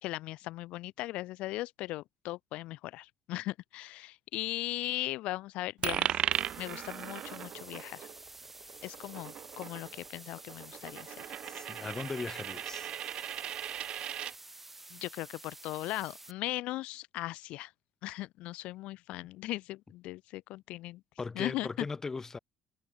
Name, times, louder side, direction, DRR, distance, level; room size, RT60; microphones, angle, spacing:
voice 1, 0.0-6.2 6.6-8.1 8.8-11.1 14.9-17.7 18.0-21.0 21.3-21.7, left 18 dB, 75° left, 3.4 m, -38 dB
Coin (dropping), 5.8-14.3, right 11 dB, 55° right, 1.9 m, -37 dB
sound 1, 6.3-16.3, right 2 dB, 10° right, 6.7 m, -51 dB
voice 2, 11.5-12.9 21.2-22.4, left 4 dB, 25° left, 4.6 m, -38 dB
cardioid pair, 105°, 2 cm